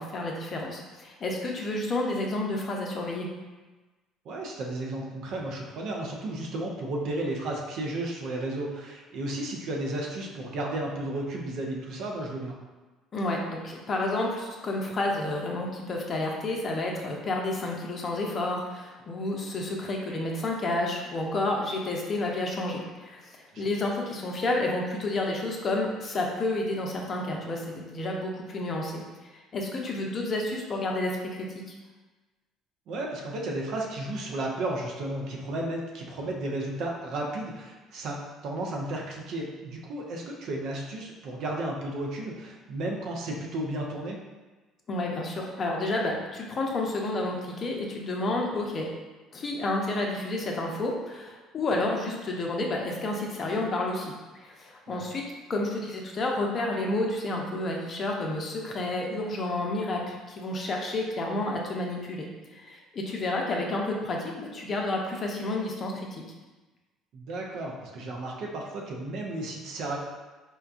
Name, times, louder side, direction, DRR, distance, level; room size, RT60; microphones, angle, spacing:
voice 1, 0.0-3.3 13.1-29.0 29.5-31.7 44.9-48.9 49.3-54.1 54.3-55.2 55.5-62.3 62.5-66.1, left 2 dB, 40° left, 0 dB, 0.6 m, -30 dB
voice 2, 4.2-12.6 23.5-23.6 32.9-44.2 54.9-55.0 67.1-70.0, right 1 dB, 60° right, -1 dB, 0.6 m, -33 dB
4.4 x 2.2 x 2.4 m, 1.2 s
hypercardioid pair, 55°, 0 cm